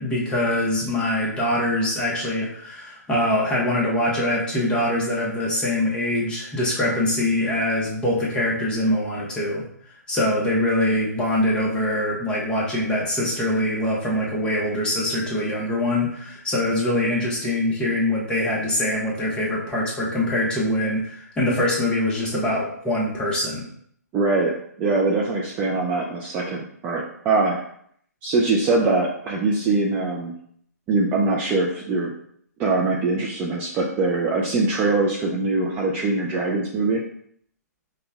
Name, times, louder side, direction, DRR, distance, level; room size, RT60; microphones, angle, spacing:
voice 1, 0.0-9.6 10.1-23.6, left 1 dB, 10° left, -5 dB, 0.8 m, -23 dB
voice 2, 24.1-27.6 28.2-30.3 30.9-32.2 32.6-37.0, right 3 dB, 20° right, -3 dB, 0.4 m, -22 dB
5.1 x 2.2 x 2.3 m, 0.67 s
figure-of-eight pair, 135°, 9 cm